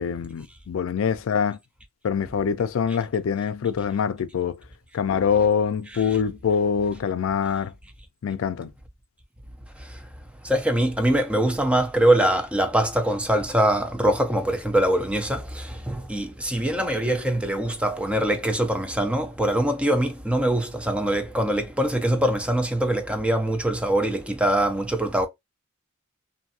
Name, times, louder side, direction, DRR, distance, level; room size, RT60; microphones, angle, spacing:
voice 1, 0.0-1.6 2.0-4.6 4.9-7.7 8.2-8.7, left 6 dB, 70° left, 0.4 m, -24 dB
voice 2, 10.4-25.3, right 1 dB, 5° right, 0.5 m, -23 dB
2.7 x 2.6 x 2.4 m
head